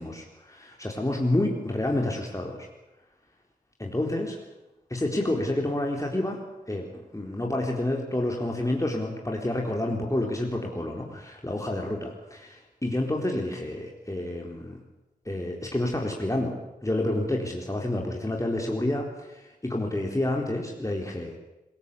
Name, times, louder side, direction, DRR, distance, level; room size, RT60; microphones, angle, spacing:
voice 1, 0.0-2.7 3.8-4.4 4.9-6.4 6.7-14.8 15.3-16.5 16.8-21.4, left 1 dB, 20° left, 0 dB, 4.1 m, -29 dB
26.0 x 16.5 x 8.5 m, 0.99 s
cardioid pair, 40°, 17 cm